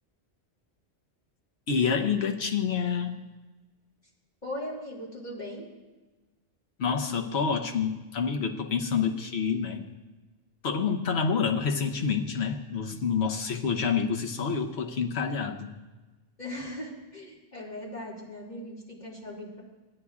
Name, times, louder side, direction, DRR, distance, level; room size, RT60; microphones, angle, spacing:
voice 1, 1.7-3.2 6.8-9.9 10.6-15.8, left 6 dB, 70° left, 4 dB, 1.0 m, -28 dB
voice 2, 4.4-5.7 16.4-19.6, left 1 dB, 40° left, -5 dB, 2.5 m, -39 dB
16.5 x 9.6 x 2.4 m, 1.2 s
omnidirectional pair, 1.1 m